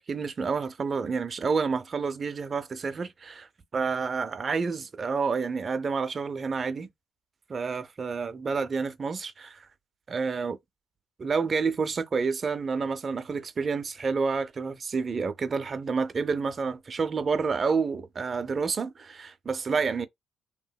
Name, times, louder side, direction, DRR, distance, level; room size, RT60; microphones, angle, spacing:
voice 1, 0.1-6.9 7.5-9.7 10.1-10.6 11.2-20.1, right 5 dB, 40° right, 0.4 m, -29 dB
2.7 x 2.6 x 2.2 m
cardioid pair, 90°, 0 cm